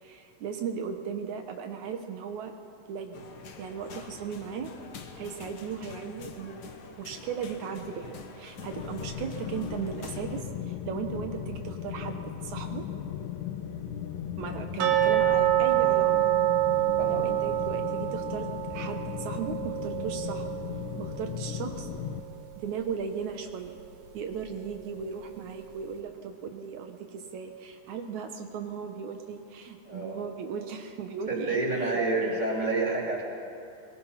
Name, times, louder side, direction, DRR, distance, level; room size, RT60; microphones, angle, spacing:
voice 1, 0.0-2.5 2.9-3.3 3.6-4.7 5.2-12.8 14.4-16.3 17.1-20.5 21.0-21.9 22.6-23.8 24.1-32.7, right 6 dB, 75° right, 5 dB, 2.4 m, -37 dB
sound 1, 3.1-10.4, left 5 dB, 55° left, 1.2 m, -46 dB
sound 2, 8.7-22.2, left 9 dB, 80° left, 2.4 m, -37 dB
sound 3, 14.8-21.7 21.9-22.0 22.5-22.6 23.2-23.3, right 14 dB, 60° right, 2.3 m, -27 dB
voice 2, 29.8-30.2 31.3-33.2, right 2 dB, 15° right, -3 dB, 3.3 m, -28 dB
23.0 x 20.5 x 5.7 m, 2.6 s
omnidirectional pair, 3.4 m